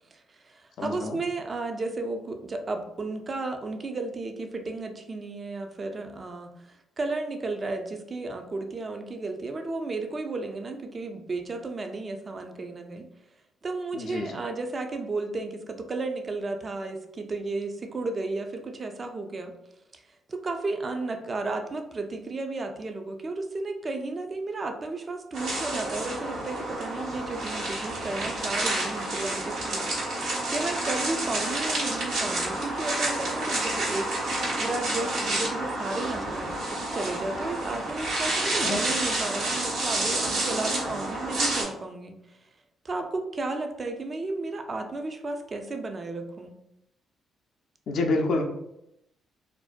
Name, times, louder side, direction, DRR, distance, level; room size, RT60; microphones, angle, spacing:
voice 1, 0.1-13.1 13.6-19.5 19.9-20.0 20.3-34.2 34.6-42.4 42.8-46.6, right 3 dB, 40° right, 5 dB, 0.4 m, -33 dB
voice 2, 0.8-1.2 13.9-14.4 38.6-38.8 47.9-48.4, left 3 dB, 70° left, 3 dB, 0.4 m, -28 dB
sound 1, 25.3-41.6, right 2 dB, 80° right, 0.9 m, -29 dB
2.5 x 2.1 x 2.4 m, 0.82 s
supercardioid pair, 60°, 0 cm